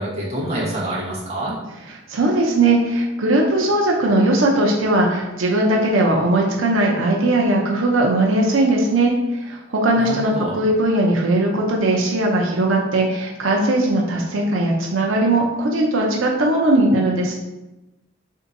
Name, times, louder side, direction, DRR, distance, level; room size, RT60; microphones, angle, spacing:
voice 1, 0.0-1.6 9.9-10.5, right 1 dB, 35° right, -6 dB, 1.1 m, -26 dB
voice 2, 2.1-17.4, right 1 dB, 90° right, -1 dB, 0.6 m, -19 dB
3.5 x 2.7 x 3.9 m, 0.99 s
head